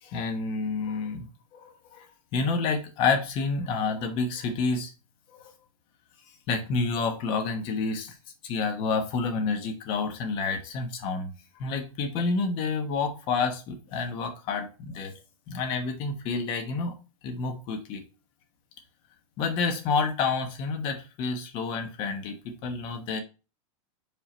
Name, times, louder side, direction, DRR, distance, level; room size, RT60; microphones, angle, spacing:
voice 1, 0.0-1.3 1.6-2.0 2.3-4.9 5.3-5.4 6.5-8.1 8.4-11.3 11.6-15.1 15.5-16.9 17.2-18.0 19.4-23.2, left 4 dB, 30° left, 5 dB, 1.0 m, -29 dB
5.1 x 4.5 x 4.3 m, 0.32 s
supercardioid pair, 170°, 18 cm